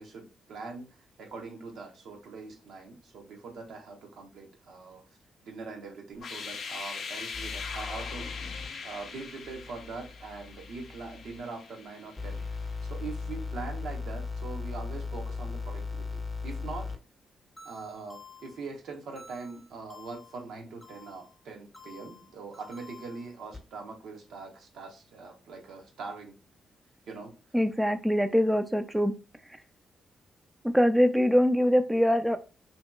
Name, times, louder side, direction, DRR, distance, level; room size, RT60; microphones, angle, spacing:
voice 1, 0.0-5.0 5.4-16.9 17.6-26.3 27.1-27.3, right 4 dB, 75° right, 0.7 m, -42 dB
sound 1, 6.1-13.0, left 5 dB, 65° left, 0.4 m, -41 dB
sound 2, 7.3-8.7 9.4-11.4 12.2-17.0 17.6-18.6 19.2-20.4 20.8-21.3 21.7-23.6, left 4 dB, 20° left, 0.7 m, -39 dB
voice 2, 27.5-29.1 30.7-32.4, equal, 5° right, 0.3 m, -23 dB
2.8 x 2.8 x 2.2 m
supercardioid pair, 50°, 0 cm